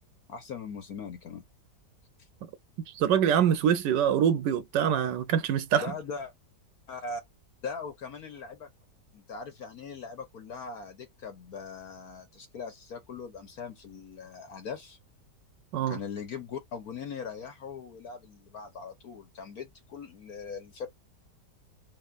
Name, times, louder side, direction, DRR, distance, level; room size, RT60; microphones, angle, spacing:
voice 1, 0.3-1.4 5.8-6.3 6.9-7.2 7.6-8.7 9.1-15.0 15.9-20.9, left 5 dB, 60° left, 1.4 m, -40 dB
voice 2, 2.9-5.9 15.7-16.0, right 9 dB, 90° right, 1.3 m, -24 dB
4.0 x 3.6 x 2.5 m
omnidirectional pair, 1.8 m